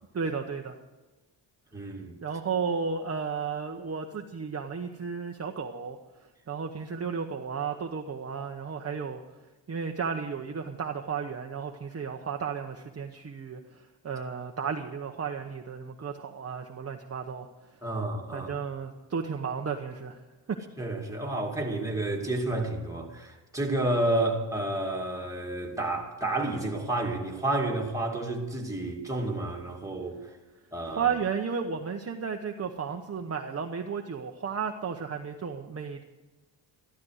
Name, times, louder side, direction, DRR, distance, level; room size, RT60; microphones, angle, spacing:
voice 1, 0.1-0.8 2.2-6.0 6.5-9.2 9.7-17.5 18.3-20.2 20.5-20.6 30.9-36.0, right 6 dB, 35° right, 0.9 m, -33 dB
voice 2, 1.7-2.2 17.8-18.5 20.8-30.2 30.7-31.1, right 2 dB, 5° right, 2.3 m, -30 dB
14.0 x 12.5 x 6.4 m
wide cardioid pair, 125°, 45 cm